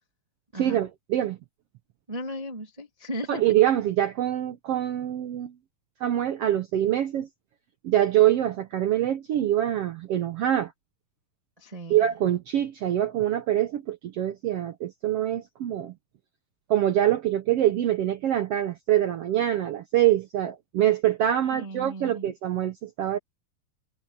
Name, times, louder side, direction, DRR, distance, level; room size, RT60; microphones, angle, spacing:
voice 1, 0.6-1.4 3.3-5.5 6.0-7.3 7.8-10.7 11.9-15.9 16.7-23.2, right 12 dB, 85° right, 1.3 m, -24 dB
voice 2, 2.1-3.4 11.6-12.1 21.5-22.3, equal, 20° right, 1.1 m, -36 dB
omnidirectional pair, 4.0 m